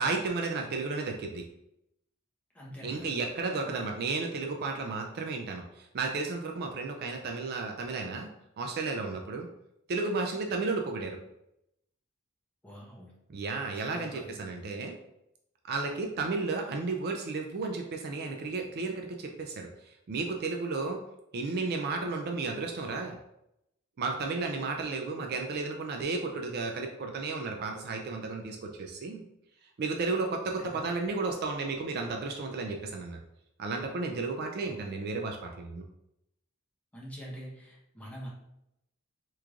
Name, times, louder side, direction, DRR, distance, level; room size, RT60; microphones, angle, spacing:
voice 1, 0.0-1.4 2.8-8.3 8.6-9.5 9.9-11.2 13.3-14.9 15.6-21.0 21.3-23.2 24.0-29.2 29.8-33.2 33.6-35.8, right 3 dB, 50° right, 3 dB, 0.3 m, -33 dB
voice 2, 2.5-3.3 3.6-3.9 12.6-13.1 13.7-14.3 30.7-30.8 34.6-34.9 36.9-38.3, equal, 5° left, -6 dB, 0.9 m, -45 dB
3.5 x 3.0 x 2.4 m, 0.83 s
head